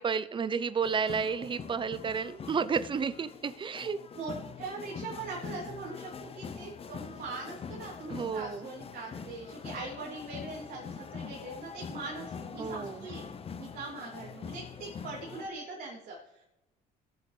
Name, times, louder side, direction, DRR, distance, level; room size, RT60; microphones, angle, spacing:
voice 1, 0.0-4.0 8.1-8.7 12.6-13.1, right 6 dB, 30° right, 14 dB, 0.6 m, -31 dB
sound 1, 0.8-15.5, left 6 dB, 35° left, 0.7 m, -44 dB
voice 2, 4.2-13.2 13.6-16.4, right 3 dB, 60° right, -4 dB, 3.1 m, -41 dB
19.0 x 8.1 x 3.3 m, 0.96 s
cardioid pair, 110°, 17 cm